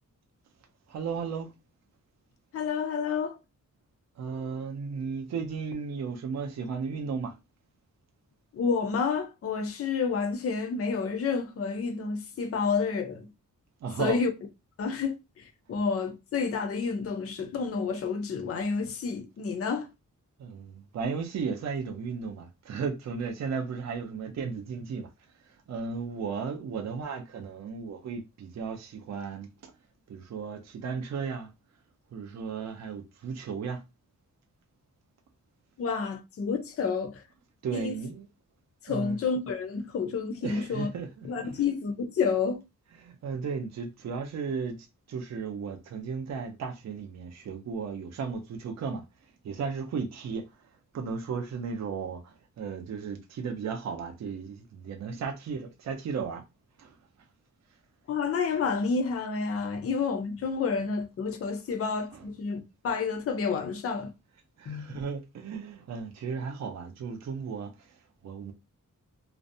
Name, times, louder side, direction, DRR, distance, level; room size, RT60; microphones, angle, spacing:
voice 1, 0.9-1.5 4.2-7.4 13.8-14.2 20.4-25.1 25.5-29.7 30.1-31.5 32.1-33.8 37.6-38.3 38.9-39.3 40.4-41.7 42.9-44.8 45.1-49.0 49.4-50.7 50.9-56.4 56.8-57.0 59.7-59.8 61.7-61.8 62.1-62.3 64.6-68.5, right 5 dB, 55° right, 0.5 m, -35 dB
voice 2, 2.5-3.4 8.5-13.3 14.0-14.3 14.8-19.9 35.8-37.2 37.7-37.9 38.8-40.9 41.2-42.6 58.1-64.1 64.7-65.0, left 5 dB, 45° left, 0.4 m, -29 dB
2.5 x 2.0 x 2.6 m
wide cardioid pair, 175°, 33 cm